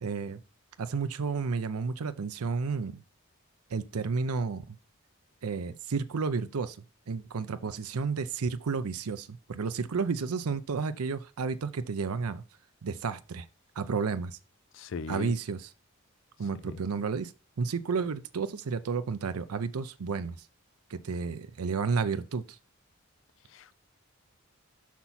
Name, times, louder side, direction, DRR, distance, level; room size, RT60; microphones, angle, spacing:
voice 1, 0.0-0.4 0.8-3.0 3.7-4.8 5.4-6.8 7.1-12.4 12.8-13.5 13.8-14.4 15.1-15.7 16.4-17.3 17.6-20.4 20.9-22.6, right 5 dB, 85° right, 0.5 m, -31 dB
voice 2, 14.7-15.3 16.7-16.8 23.5-23.7, left 5 dB, 60° left, 0.4 m, -38 dB
5.9 x 5.8 x 4.1 m
head